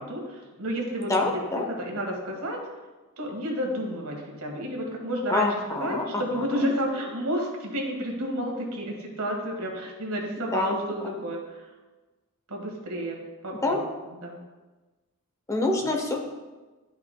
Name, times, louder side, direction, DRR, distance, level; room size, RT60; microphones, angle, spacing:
voice 1, 0.0-2.6 3.2-5.5 5.8-11.7 12.5-13.8 14.0-14.4, equal, 75° right, 1 dB, 1.6 m, -31 dB
voice 2, 1.1-1.6 5.3-6.2 6.6-6.7 10.5-10.8 11.0-11.1 13.6-13.8 15.5-16.2, left 2 dB, 15° left, 1 dB, 0.8 m, -26 dB
11.5 x 5.6 x 2.3 m, 1.2 s
head